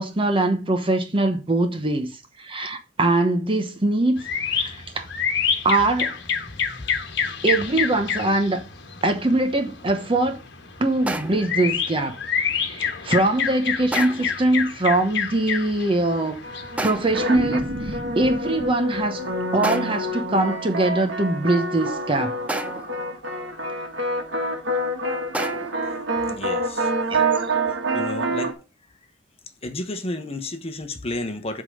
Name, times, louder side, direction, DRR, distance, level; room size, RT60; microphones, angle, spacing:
voice 1, 0.0-2.1 2.4-4.2 4.5-5.1 5.6-6.2 7.4-8.6 9.0-10.4 10.8-12.2 12.6-16.4 16.8-19.2 19.5-22.4 27.1-27.3, right 2 dB, 30° right, 1.0 m, -22 dB
sound 1, 4.2-17.4, left 6 dB, 65° left, 1.3 m, -28 dB
sound 2, 11.1-11.6 13.9-14.4 16.8-17.3 19.6-20.1 22.5-23.0 25.3-25.9, right 2 dB, 5° right, 0.6 m, -31 dB
sound 3, 16.4-28.5, right 1 dB, 75° right, 1.7 m, -27 dB
voice 2, 26.2-26.9 27.7-28.6 29.6-31.6, left 2 dB, 30° left, 1.1 m, -32 dB
8.0 x 3.7 x 6.5 m
head